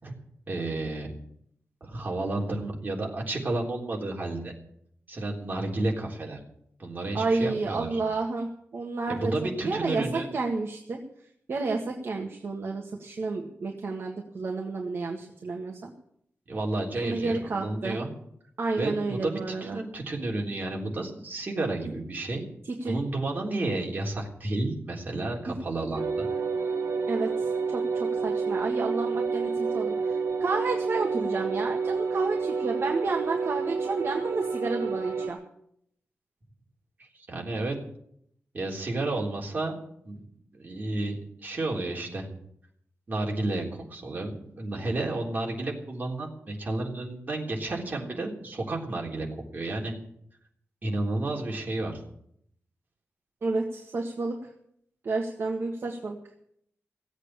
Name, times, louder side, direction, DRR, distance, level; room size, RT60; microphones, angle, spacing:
voice 1, 0.5-1.1 1.8-4.6 5.1-6.4 6.8-8.0 9.1-10.3 16.5-18.1 18.8-22.5 22.8-26.3 37.0-37.8 38.5-39.8 40.0-40.3 40.5-42.3 43.1-49.3 49.5-49.9 50.8-52.0, right 2 dB, 35° right, -1 dB, 3.6 m, -31 dB
voice 2, 7.1-9.3 9.6-11.0 11.5-15.9 17.0-18.0 18.6-19.8 22.6-23.0 25.5-25.6 27.1-30.1 30.4-35.4 53.4-54.5 55.0-56.2, right 3 dB, 55° right, 0 dB, 1.7 m, -31 dB
sound 1, 25.9-35.3, right 5 dB, 80° right, 2.2 m, -29 dB
16.5 x 8.2 x 8.9 m, 0.70 s
wide cardioid pair, 165°, 5 cm